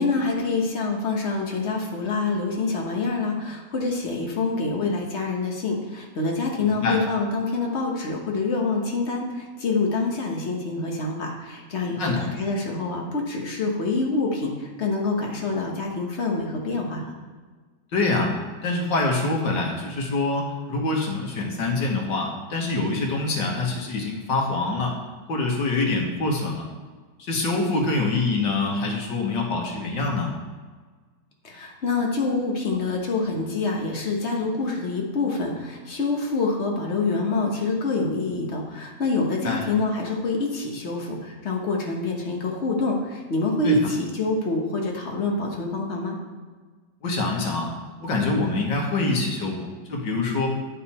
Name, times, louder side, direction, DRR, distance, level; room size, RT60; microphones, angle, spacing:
voice 1, 0.0-17.1 31.4-46.2, left 3 dB, 40° left, 0 dB, 1.4 m, -26 dB
voice 2, 6.6-7.0 12.0-12.3 17.9-18.3 18.6-25.0 25.3-26.7 27.2-30.3 39.4-39.6 43.6-43.8 47.0-47.7 48.0-50.5, left 3 dB, 85° left, 0 dB, 2.1 m, -25 dB
9.1 x 5.9 x 4.3 m, 1.4 s
omnidirectional pair, 1.9 m